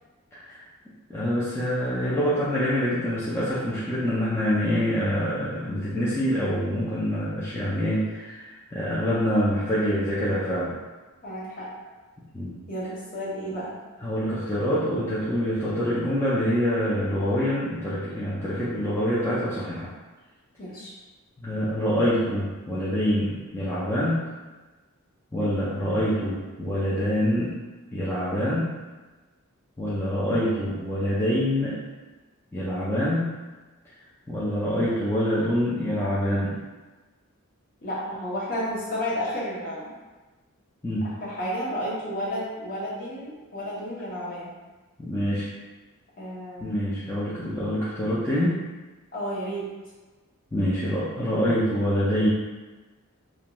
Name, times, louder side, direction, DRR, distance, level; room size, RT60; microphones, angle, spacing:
voice 1, 0.3-0.6 1.1-10.7 12.3-12.6 14.0-19.9 21.4-24.2 25.3-27.6 27.9-28.7 29.8-31.8 32.5-33.3 34.3-36.6 40.8-41.1 45.0-45.5 46.6-48.6 50.5-52.3, equal, 10° left, -10 dB, 0.3 m, -25 dB
voice 2, 11.2-11.7 12.7-13.7 20.6-20.9 37.8-39.9 41.0-44.5 46.2-46.8 49.1-49.7, equal, 40° left, -6 dB, 0.8 m, -32 dB
2.5 x 2.2 x 2.9 m, 1.2 s
head